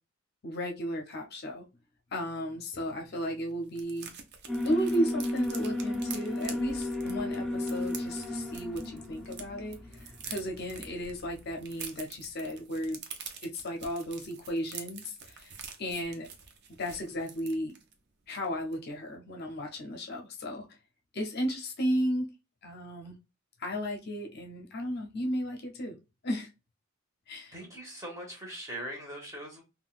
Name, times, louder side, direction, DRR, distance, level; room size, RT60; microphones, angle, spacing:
voice 1, 0.4-1.7 2.1-4.1 4.6-13.0 13.4-16.3 16.8-17.7 18.3-20.7 21.1-22.3 22.6-23.1 23.6-25.9 26.2-26.5 27.3-27.5, equal, 50° left, 0.6 m, -34 dB
sound 1, 2.7-2.8 3.1-3.2 3.4-9.4 9.7-17.9 18.3-18.5 18.7-19.0, right 6 dB, 50° right, 0.6 m, -46 dB
Alarm, 4.5-11.6, left 1 dB, ahead, 0.5 m, -34 dB
voice 2, 27.5-29.6, right 1 dB, 15° right, 1.0 m, -41 dB
3.6 x 2.3 x 2.4 m
head